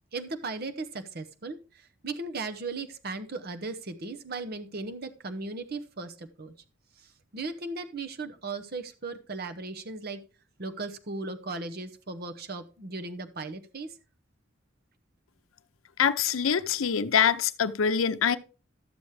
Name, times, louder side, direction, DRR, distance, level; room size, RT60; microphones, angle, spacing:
voice 1, 0.1-6.5 7.0-7.1 7.3-10.2 10.6-13.9, right 3 dB, 50° right, 0.8 m, -37 dB
voice 2, 16.0-18.4, left 7 dB, 80° left, 0.6 m, -24 dB
13.0 x 7.1 x 3.2 m
head